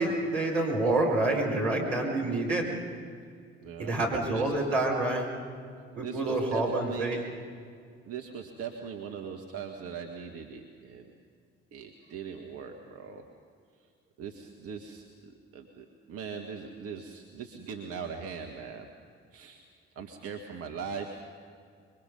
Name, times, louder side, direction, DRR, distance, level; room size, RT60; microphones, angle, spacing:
voice 1, 0.0-2.7 3.8-5.3 5.9-7.2, right 2 dB, 70° right, -3 dB, 4.9 m, -27 dB
voice 2, 3.6-4.0 4.3-4.5 6.0-7.2 8.0-11.1 11.7-13.2 14.2-18.9 19.3-19.6 20.0-21.4, right 6 dB, 45° right, 3 dB, 1.7 m, -40 dB
26.5 x 23.5 x 5.4 m, 2.2 s
figure-of-eight pair, 45°, 32 cm